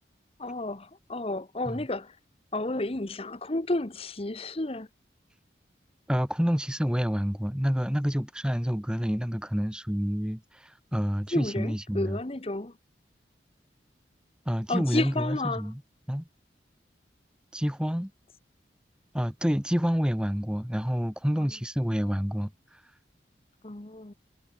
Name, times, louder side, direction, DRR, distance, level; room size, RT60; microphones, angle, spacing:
voice 1, 0.4-2.2 2.5-4.9 11.3-12.7 14.7-15.7 23.6-24.1, left 2 dB, 30° left, 1.0 m, -31 dB
voice 2, 6.1-12.2 14.4-15.8 16.1-16.3 17.5-18.1 19.1-22.8, equal, 5° right, 1.4 m, -28 dB
head